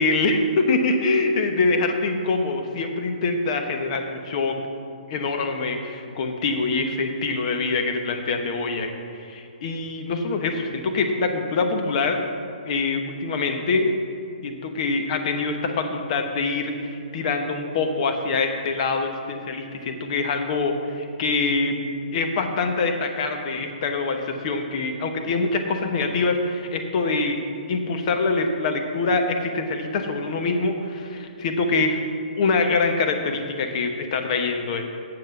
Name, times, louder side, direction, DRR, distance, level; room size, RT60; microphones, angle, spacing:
voice 1, 0.0-4.6 5.1-12.2 12.7-13.9 14.4-21.8 22.1-27.4 27.7-32.0 32.4-34.9, left 3 dB, 45° left, 4 dB, 1.1 m, -24 dB
7.7 x 7.4 x 6.7 m, 2.4 s
hypercardioid pair, 140°, 5 cm